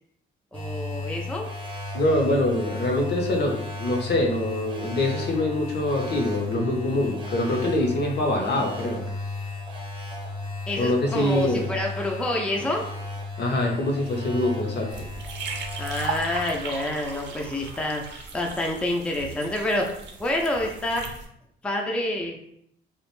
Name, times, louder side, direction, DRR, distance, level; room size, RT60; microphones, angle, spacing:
voice 1, 0.5-1.5 10.7-12.9 15.8-19.9 20.2-21.1 21.6-22.4, left 1 dB, 5° left, 0 dB, 0.4 m, -27 dB
sound 1, 0.5-16.5, left 2 dB, 25° right, 0.7 m, -35 dB
voice 2, 1.9-9.0 10.8-11.6 13.4-14.9, left 1 dB, 60° left, 1 dB, 0.6 m, -24 dB
sound 2, 14.9-21.3, right 5 dB, 60° right, 0.5 m, -37 dB
2.4 x 2.1 x 3.0 m, 0.71 s
cardioid pair, 90°, 20 cm